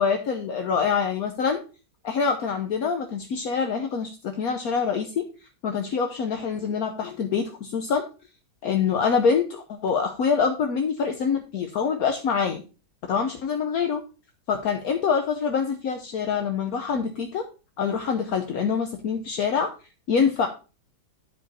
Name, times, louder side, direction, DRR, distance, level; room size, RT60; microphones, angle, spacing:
voice 1, 0.0-1.6 2.0-5.3 5.6-8.0 8.6-12.6 13.1-14.0 14.5-17.4 17.8-19.7 20.1-20.5, left 6 dB, 65° left, 5 dB, 1.2 m, -25 dB
9.8 x 4.9 x 4.1 m, 0.33 s
omnidirectional pair, 1.8 m